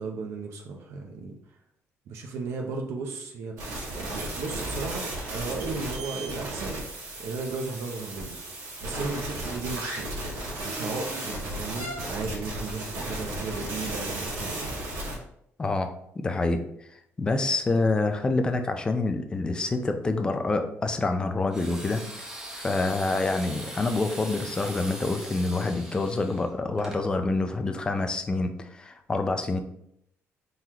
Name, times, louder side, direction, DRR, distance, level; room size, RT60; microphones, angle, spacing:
voice 1, 0.0-1.4 2.1-6.8 7.2-8.4 8.8-10.2 10.6-14.7, right 4 dB, 65° right, 2 dB, 0.6 m, -35 dB
sound 1, 3.6-15.2, right 1 dB, 85° right, 1.7 m, -34 dB
voice 2, 15.6-16.6 17.2-22.0 22.5-29.6, left 3 dB, 15° left, 7 dB, 0.4 m, -27 dB
sound 2, 21.5-27.0, right 1 dB, 10° right, 0.7 m, -41 dB
4.5 x 3.9 x 2.9 m, 0.74 s
cardioid pair, 165°, 5 cm